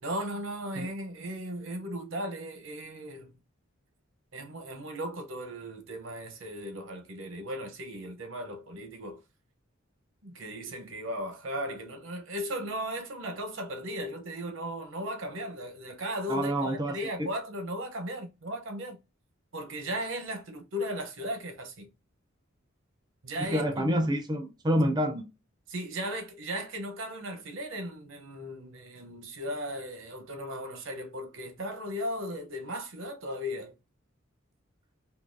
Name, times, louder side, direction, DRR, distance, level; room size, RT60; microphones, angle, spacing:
voice 1, 0.0-3.3 4.3-9.2 10.2-19.0 19.5-21.9 23.2-23.9 25.7-33.7, equal, 70° right, 0.8 m, -36 dB
voice 2, 16.3-17.3 23.4-25.2, equal, 20° right, 0.5 m, -28 dB
3.8 x 2.7 x 2.6 m
head